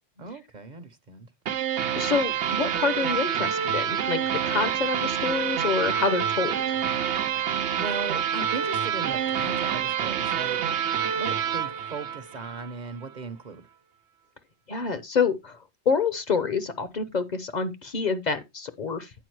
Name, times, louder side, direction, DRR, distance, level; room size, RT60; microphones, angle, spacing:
voice 1, 0.2-1.3 7.7-13.7, right 4 dB, 45° right, 0.8 m, -38 dB
sound 1, 1.5-12.7, right 9 dB, 90° right, 1.0 m, -27 dB
voice 2, 2.0-4.2 4.4-6.6 14.7-15.6 15.9-19.1, left 5 dB, 45° left, 0.8 m, -27 dB
9.2 x 4.7 x 4.6 m
omnidirectional pair, 1.1 m